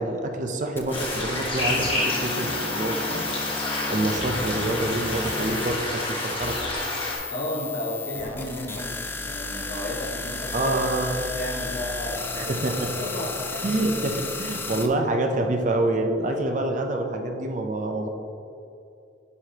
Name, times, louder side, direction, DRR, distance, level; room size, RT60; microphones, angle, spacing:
voice 1, 0.0-3.4 3.9-6.6 10.5-11.3 12.4-12.9 13.6-18.1, right 2 dB, 40° right, 3 dB, 0.6 m, -27 dB
sound 1, 0.8-14.9, left 3 dB, 10° left, 0.3 m, -34 dB
sound 2, 0.9-7.2, left 2 dB, 30° left, 1.4 m, -29 dB
voice 2, 7.3-10.7 11.4-12.6 13.0-14.3, left 1 dB, 65° left, -4 dB, 1.6 m, -33 dB
9.6 x 4.9 x 2.9 m, 2.5 s
head